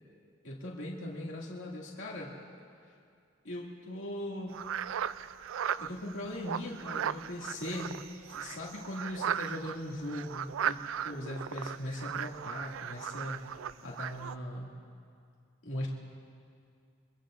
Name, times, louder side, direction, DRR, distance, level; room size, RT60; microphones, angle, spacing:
voice 1, 0.4-2.3 3.4-4.7 5.8-7.9 8.3-14.7 15.6-15.9, left 1 dB, 80° left, -4 dB, 2.3 m, -39 dB
sound 1, 4.5-14.4, right 9 dB, 85° right, 0.4 m, -37 dB
25.5 x 22.0 x 2.6 m, 2.3 s
head